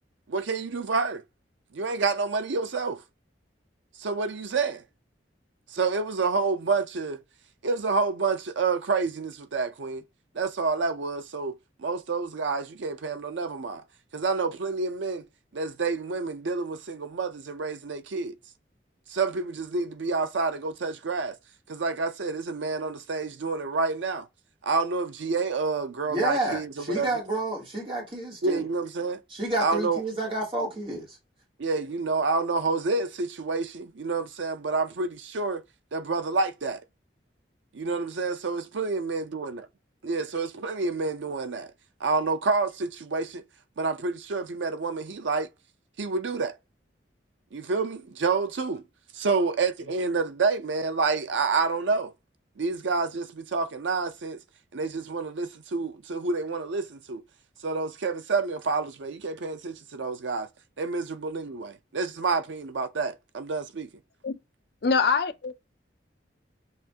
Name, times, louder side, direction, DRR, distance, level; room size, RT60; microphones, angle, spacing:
voice 1, 0.3-1.2 1.7-3.0 4.0-4.8 5.7-7.2 7.6-10.0 10.3-13.8 14.1-15.3 15.5-18.3 19.1-21.4 21.7-24.3 24.6-27.1 28.4-29.2 29.6-30.0 31.6-35.6 35.9-36.8 37.7-39.5 40.0-41.7 42.0-43.4 43.8-45.5 46.0-46.6 47.5-48.8 49.1-52.1 52.6-54.4 54.7-57.2 57.6-60.5 60.8-63.9, right 4 dB, 85° right, 0.6 m, -28 dB
voice 2, 26.1-28.7 29.3-31.2, right 1 dB, 30° right, 1.3 m, -30 dB
voice 3, 64.8-65.6, left 5 dB, 60° left, 0.5 m, -24 dB
6.6 x 2.5 x 2.8 m
head